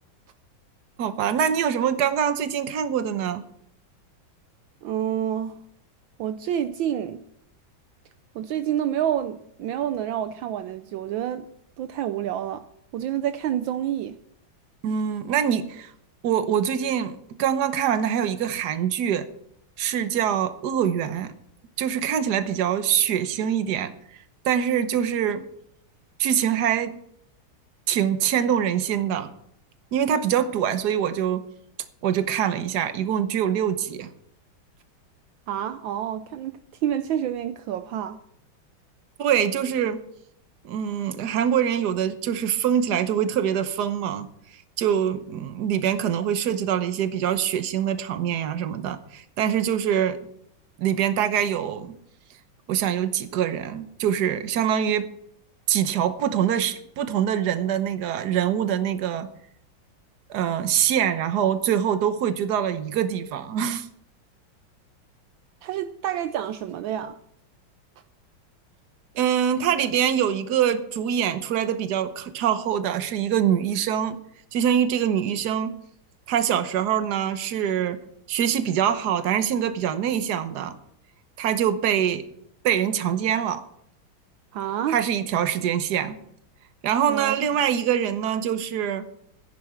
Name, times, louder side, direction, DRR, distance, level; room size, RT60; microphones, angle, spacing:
voice 1, 1.0-3.4 14.8-15.9 16.2-19.3 19.8-21.3 21.8-23.9 24.4-25.4 26.2-26.9 27.9-29.3 29.9-31.4 32.0-34.1 39.2-40.0 40.6-44.3 44.8-50.2 50.8-52.0 52.7-55.1 55.7-59.3 60.3-63.9 69.1-74.2 74.5-75.7 76.3-78.0 78.3-80.8 81.4-82.3 82.6-83.6 84.9-86.2 86.8-89.1, right 9 dB, 60° right, 1.4 m, -24 dB
voice 2, 4.8-5.6 6.2-7.2 8.3-11.5 11.8-12.6 12.9-14.2 35.5-38.2 65.6-67.2 84.5-85.0 87.1-87.4, right 10 dB, 75° right, 1.3 m, -28 dB
15.0 x 10.5 x 4.5 m
omnidirectional pair, 2.2 m